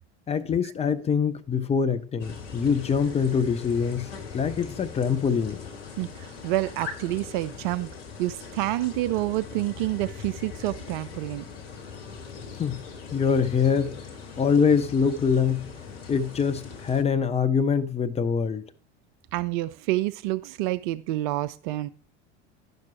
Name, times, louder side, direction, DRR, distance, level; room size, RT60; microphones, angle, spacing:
voice 1, 0.3-4.1 4.3-5.6 12.6-12.8 13.1-13.9 14.4-15.7 16.1-18.6, left 6 dB, 20° left, 0.6 m, -24 dB
sound 1, 2.2-17.0, left 6 dB, 60° left, 1.5 m, -41 dB
voice 2, 6.0-7.9 8.2-11.4 19.3-21.9, right 16 dB, 45° right, 0.4 m, -28 dB
10.5 x 6.0 x 4.4 m
figure-of-eight pair, 70°, 35 cm